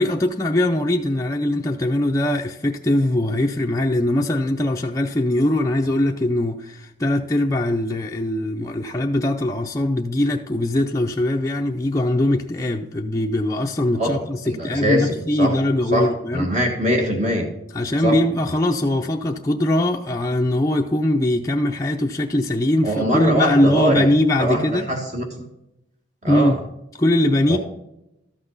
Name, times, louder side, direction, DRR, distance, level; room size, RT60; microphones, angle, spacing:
voice 1, 0.0-16.5 17.7-24.9 26.3-26.5 27.0-27.6, left 1 dB, 20° left, 0.5 m, -21 dB
voice 2, 14.4-15.6 15.9-17.5 18.0-18.2 22.8-24.1 24.4-25.5 26.2-26.6 27.5-27.6, right 1 dB, 40° right, 1.7 m, -22 dB
13.5 x 5.8 x 3.9 m
head